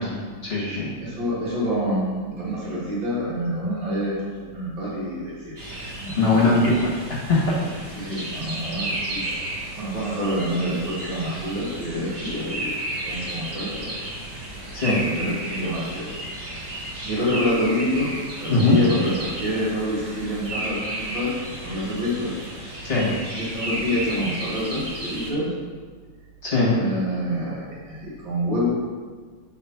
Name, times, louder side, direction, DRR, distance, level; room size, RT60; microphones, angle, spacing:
voice 1, 0.0-0.9 6.2-6.9 7.3-7.6 14.7-15.0 18.5-18.8 22.8-23.1 26.4-26.7, left 3 dB, 35° left, -6 dB, 1.4 m, -20 dB
voice 2, 1.0-5.6 6.0-6.7 7.9-9.4 9.7-13.9 14.8-16.7 17.0-18.1 18.4-22.3 23.4-25.5 26.7-28.7, equal, 80° right, -7 dB, 2.7 m, -27 dB
sound 1, 5.6-25.3, right 1 dB, 30° right, 0.9 m, -33 dB
5.1 x 4.3 x 5.6 m, 1.5 s
omnidirectional pair, 2.1 m